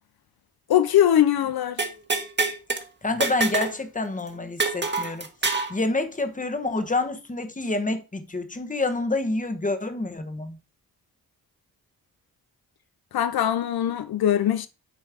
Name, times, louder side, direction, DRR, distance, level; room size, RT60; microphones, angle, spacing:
voice 1, 0.7-1.8 13.1-14.7, left 11 dB, 75° left, 0.6 m, -21 dB
sound 1, 1.8-2.8 3.2-3.8 4.0-4.1 4.6-5.7, right 3 dB, 30° right, 1.5 m, -26 dB
voice 2, 3.0-5.3 5.7-10.6, left 2 dB, 20° left, 1.2 m, -27 dB
9.2 x 3.2 x 4.9 m
cardioid pair, 60°, 37 cm